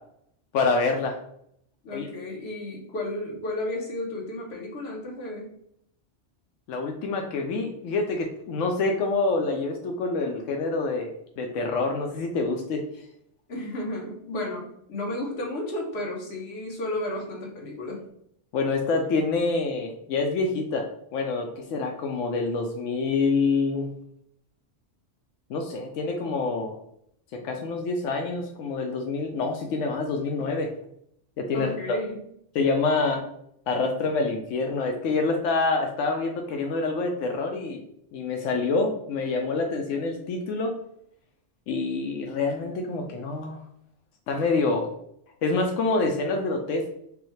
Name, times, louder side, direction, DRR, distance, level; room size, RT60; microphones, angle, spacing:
voice 1, 0.5-1.2 1.9-2.1 6.7-12.8 18.5-23.9 25.5-26.8 27.3-30.7 31.4-31.7 32.5-33.2 33.7-37.8 38.1-40.7 41.7-43.6 44.3-44.9 45.4-46.9, left 3 dB, 90° left, 2 dB, 1.0 m, -26 dB
voice 2, 1.8-5.5 13.5-18.0 31.5-32.2, left 1 dB, 60° left, -1 dB, 1.2 m, -33 dB
4.9 x 2.3 x 3.1 m, 0.71 s
omnidirectional pair, 1.3 m